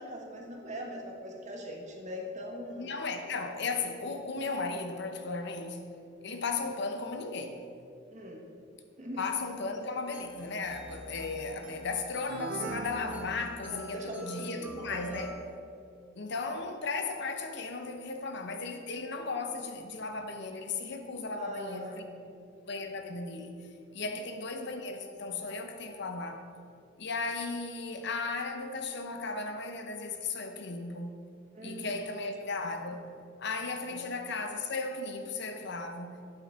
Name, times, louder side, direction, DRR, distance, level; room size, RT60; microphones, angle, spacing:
voice 1, 0.0-3.0 8.1-8.4 9.0-9.3 13.7-15.3 21.3-22.3 24.0-24.2 31.5-32.1 33.9-34.1, equal, 40° right, 0 dB, 1.6 m, -41 dB
voice 2, 2.8-5.8 6.2-7.6 9.2-15.3 16.1-22.0 22.6-23.6 23.9-26.4 27.0-31.2 31.6-33.0 33.4-36.2, left 3 dB, 60° left, 5 dB, 0.9 m, -36 dB
sound 1, 10.0-15.3, equal, 10° right, 1.4 m, -49 dB
sound 2, 12.3-14.1, right 4 dB, 55° right, 0.6 m, -39 dB
12.0 x 8.8 x 3.8 m, 2.5 s
head